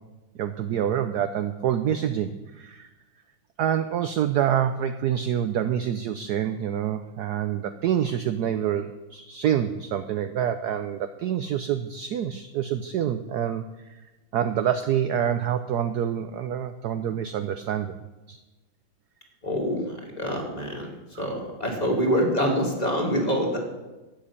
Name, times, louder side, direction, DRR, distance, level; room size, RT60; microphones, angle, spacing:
voice 1, 0.4-2.9 3.6-13.6 13.9-14.0 14.3-18.0 18.3-18.4 21.1-21.3, right 9 dB, 70° right, 9 dB, 1.0 m, -27 dB
voice 2, 19.4-20.9 21.2-23.6, equal, 20° left, -1 dB, 2.5 m, -25 dB
12.0 x 8.0 x 8.4 m, 1.1 s
omnidirectional pair, 2.2 m